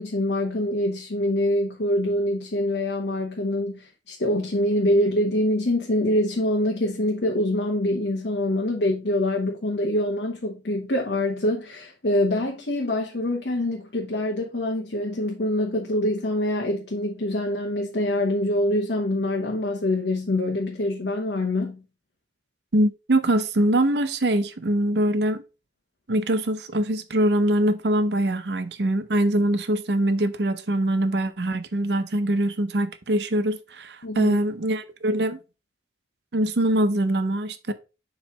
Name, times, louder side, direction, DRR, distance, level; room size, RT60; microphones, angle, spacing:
voice 1, 0.0-21.8 34.0-34.4, left 1 dB, 70° left, 1.1 m, -25 dB
voice 2, 22.7-25.4 26.1-35.4 36.3-37.7, right 1 dB, 70° right, 0.7 m, -23 dB
7.1 x 3.2 x 4.6 m
head